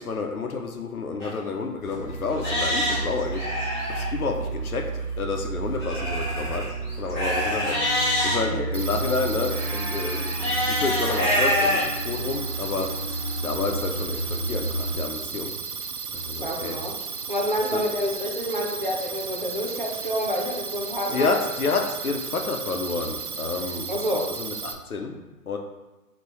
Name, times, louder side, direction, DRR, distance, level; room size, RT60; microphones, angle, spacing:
voice 1, 0.0-3.5 3.9-4.9 5.2-6.6 7.0-7.8 8.2-12.9 13.4-15.5 16.1-16.8 17.7-17.8 21.1-23.9 24.4-25.2 25.5-25.6, left 4 dB, 65° left, 3 dB, 0.8 m, -29 dB
Livestock farm animals working animals, 1.2-1.3 1.9-2.0 2.4-4.1 5.8-8.4 9.5-11.8 12.4-12.5 13.1-13.2, left 1 dB, 10° left, 1.3 m, -26 dB
sound 1, 1.8-15.0, right 2 dB, 30° left, 1.3 m, -32 dB
sound 2, 8.7-24.7, right 6 dB, 70° right, 0.7 m, -34 dB
voice 2, 16.4-16.9 17.3-21.4 23.9-24.3, equal, 35° right, -2 dB, 0.5 m, -28 dB
5.3 x 3.0 x 3.1 m, 1.1 s
figure-of-eight pair, 160°, 47 cm